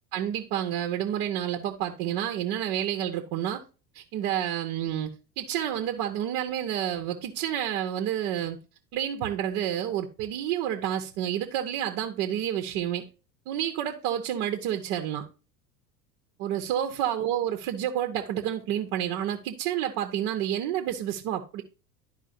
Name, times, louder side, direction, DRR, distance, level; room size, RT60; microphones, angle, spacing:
voice 1, 0.1-3.6 3.9-8.6 8.9-13.0 13.5-15.2 16.4-21.6, right 10 dB, 45° right, 1.2 m, -29 dB
12.0 x 4.9 x 2.7 m
figure-of-eight pair, 70°, 50 cm